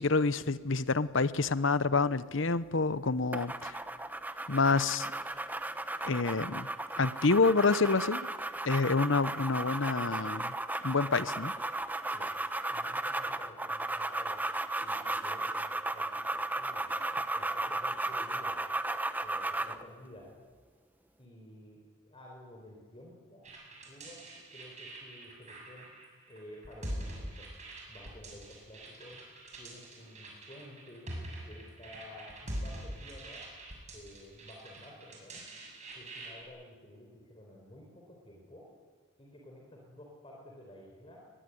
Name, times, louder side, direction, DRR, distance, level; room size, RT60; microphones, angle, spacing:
voice 1, 0.0-3.8 4.5-5.1 6.0-6.7 7.0-8.3 8.6-10.5 10.8-11.5, left 4 dB, 65° left, 15 dB, 1.0 m, -28 dB
sound 1, 3.3-19.8, right 2 dB, 10° right, 0.9 m, -35 dB
voice 2, 12.7-14.4 14.8-16.9 17.3-18.6 19.2-20.3 21.2-23.4 23.8-24.2 24.5-25.9 26.3-27.5 27.9-29.2 29.6-31.1 31.4-33.4 33.9-35.4 35.9-38.6 39.2-41.2, left 1 dB, 25° left, -2 dB, 4.4 m, -52 dB
sound 2, 23.4-36.4, right 1 dB, 35° right, 6.9 m, -44 dB
22.0 x 20.5 x 9.5 m, 1.5 s
head